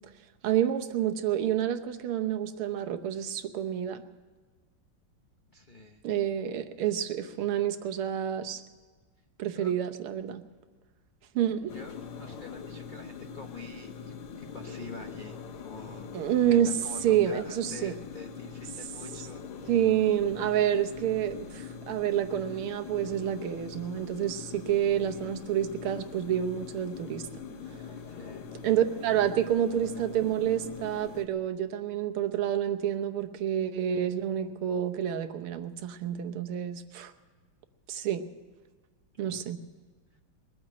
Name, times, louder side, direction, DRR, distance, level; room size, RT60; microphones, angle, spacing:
voice 1, 0.4-4.0 6.0-8.6 9.4-10.4 11.4-11.7 16.1-16.7 17.0-17.9 19.7-27.2 28.6-37.1 37.9-38.3 39.2-39.6, right 10 dB, 80° right, 8 dB, 1.9 m, -28 dB
voice 2, 5.5-6.0 9.5-9.7 11.7-19.7 20.2-20.5 28.1-28.5 39.2-39.5, left 3 dB, 60° left, 3 dB, 0.5 m, -46 dB
sound 1, 11.7-31.3, left 6 dB, 80° left, 2.0 m, -43 dB
21.5 x 9.1 x 7.4 m, 1.4 s
omnidirectional pair, 2.4 m